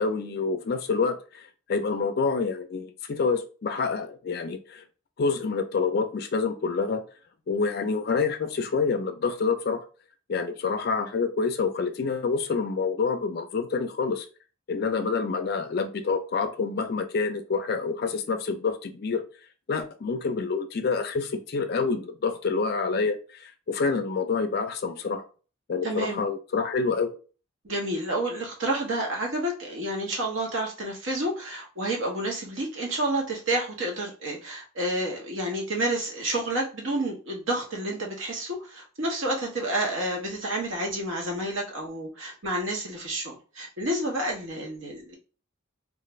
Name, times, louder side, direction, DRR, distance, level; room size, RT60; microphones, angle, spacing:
voice 1, 0.0-4.8 5.2-7.0 7.5-9.8 10.3-14.3 14.7-19.2 19.7-25.2 25.7-27.1, left 4 dB, 50° left, 8 dB, 0.4 m, -27 dB
voice 2, 25.8-26.2 27.6-45.2, right 1 dB, 65° right, 0 dB, 0.9 m, -29 dB
2.4 x 2.4 x 3.1 m, 0.37 s
head